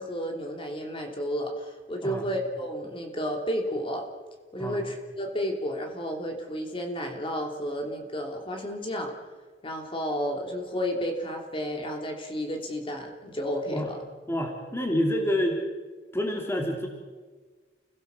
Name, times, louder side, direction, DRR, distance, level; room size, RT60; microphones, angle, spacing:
voice 1, 0.0-4.1 4.5-9.1 9.6-14.0, equal, 30° left, 3 dB, 2.9 m, -32 dB
voice 2, 14.3-15.6 16.1-16.9, equal, 15° left, 2 dB, 2.7 m, -27 dB
30.0 x 17.5 x 6.9 m, 1.4 s
head